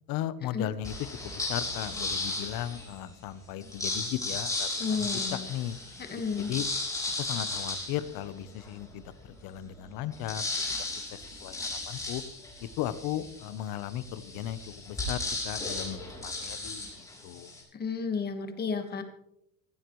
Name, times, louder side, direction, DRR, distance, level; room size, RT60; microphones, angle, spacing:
voice 1, 0.1-0.9 1.2-4.7 5.0-5.7 6.4-6.6 7.2-10.7 11.1-12.2 12.8-17.5, left 12 dB, 85° left, 14 dB, 1.0 m, -36 dB
sound 1, 0.8-3.0 3.6-8.8 9.3-9.4 9.6-17.6, left 2 dB, 10° left, 4.3 m, -35 dB
voice 2, 4.8-5.4 6.0-6.5 17.7-19.0, left 5 dB, 30° left, 6 dB, 1.5 m, -32 dB
19.0 x 15.0 x 3.1 m, 0.80 s
cardioid pair, 170°, 34 cm